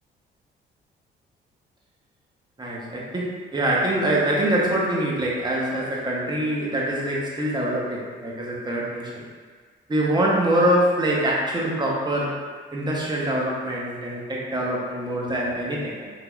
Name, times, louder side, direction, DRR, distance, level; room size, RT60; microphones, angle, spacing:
voice 1, 2.6-9.2 9.9-16.1, right 1 dB, 20° right, -3 dB, 0.7 m, -24 dB
3.3 x 2.8 x 2.3 m, 1.5 s
cardioid pair, 90°, 20 cm